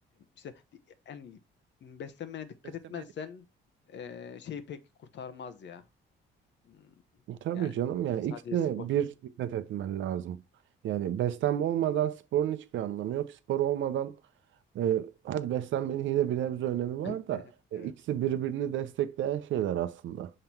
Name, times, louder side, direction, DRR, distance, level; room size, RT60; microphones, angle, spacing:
voice 1, 1.1-1.4 1.8-3.4 3.9-5.8 6.6-6.9 7.5-7.7 8.3-8.9 17.0-17.4 17.7-17.9, left 7 dB, 65° left, 1.0 m, -42 dB
voice 2, 7.3-9.1 9.4-10.4 10.8-14.2 14.7-17.4 17.7-20.3, right 11 dB, 75° right, 0.7 m, -30 dB
6.5 x 3.9 x 4.3 m
cardioid pair, 90°, 20 cm